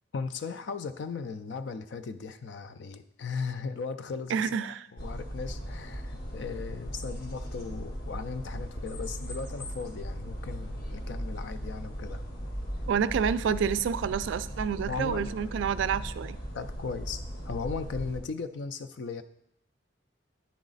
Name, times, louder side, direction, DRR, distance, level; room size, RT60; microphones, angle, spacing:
voice 1, 0.1-12.2 14.9-15.3 16.5-19.2, left 5 dB, 75° left, 12 dB, 0.4 m, -37 dB
voice 2, 4.3-4.9 12.9-16.4, right 7 dB, 90° right, 15 dB, 0.3 m, -28 dB
sound 1, 5.0-18.2, equal, 55° left, 1.1 m, -38 dB
9.4 x 4.0 x 3.9 m, 0.77 s
head